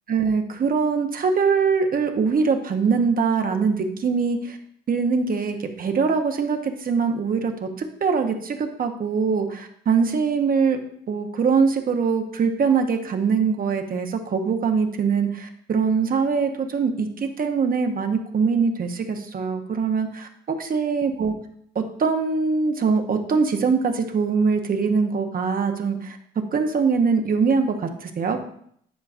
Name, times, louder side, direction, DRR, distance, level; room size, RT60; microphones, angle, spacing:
voice 1, 0.1-4.6 4.9-7.7 8.0-10.8 11.1-21.3 21.7-28.4, right 5 dB, 45° right, 5 dB, 1.0 m, -23 dB
10.0 x 4.7 x 2.6 m, 0.66 s
cardioid pair, 90°, 20 cm